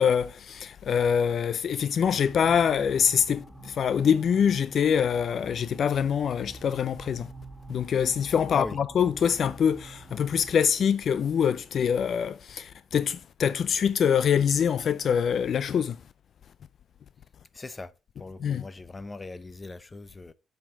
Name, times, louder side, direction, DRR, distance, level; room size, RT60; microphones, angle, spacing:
voice 1, 0.0-7.3 7.7-16.0 18.4-18.7, left 7 dB, 60° left, 0.4 m, -24 dB
sound 1, 2.0-10.6, right 3 dB, 5° right, 1.6 m, -47 dB
voice 2, 17.5-20.3, left 3 dB, 25° left, 0.7 m, -39 dB
7.4 x 5.7 x 4.7 m
cardioid pair, 90°, 0 cm